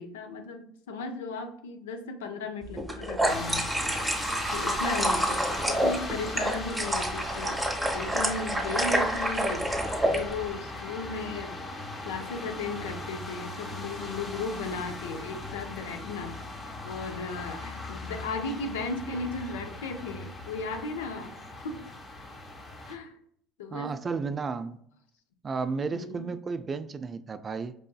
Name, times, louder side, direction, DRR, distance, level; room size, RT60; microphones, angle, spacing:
voice 1, 0.0-4.2 4.5-9.7 10.0-16.4 16.6-21.3 21.6-21.9 22.9-23.1 23.6-24.2 25.9-26.3, left 3 dB, 85° left, 6 dB, 0.4 m, -36 dB
sound 1, 2.8-10.2, right 1 dB, 10° right, 0.9 m, -28 dB
sound 2, 3.2-22.9, left 2 dB, 35° left, 1.0 m, -38 dB
voice 2, 23.7-24.8 25.4-27.7, right 4 dB, 35° right, 12 dB, 0.3 m, -33 dB
4.7 x 2.6 x 2.2 m, 0.66 s
hypercardioid pair, 70°, 0 cm